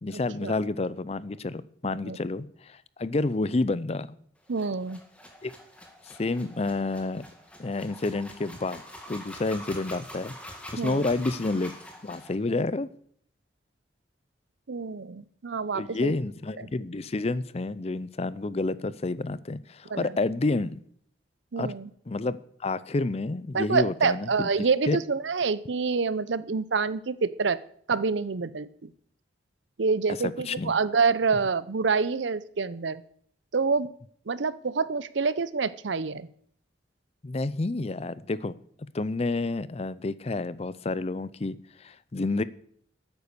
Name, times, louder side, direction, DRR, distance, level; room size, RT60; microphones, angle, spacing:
voice 1, 0.0-4.2 5.4-5.5 6.2-7.2 7.6-11.7 12.0-12.9 15.7-20.8 21.6-21.7 22.1-24.5 24.9-25.0 30.2-30.7 37.2-38.5 38.9-42.4, left 2 dB, 35° left, 17 dB, 0.5 m, -29 dB
sound 1, 4.5-12.3, equal, 5° left, 2.0 m, -45 dB
voice 2, 4.5-5.0 10.8-11.1 14.7-16.1 19.9-20.1 21.5-21.9 23.5-27.6 27.9-28.9 29.8-33.0 33.5-33.9 34.3-36.3, right 4 dB, 80° right, 17 dB, 0.7 m, -27 dB
12.0 x 9.2 x 6.8 m, 0.62 s
head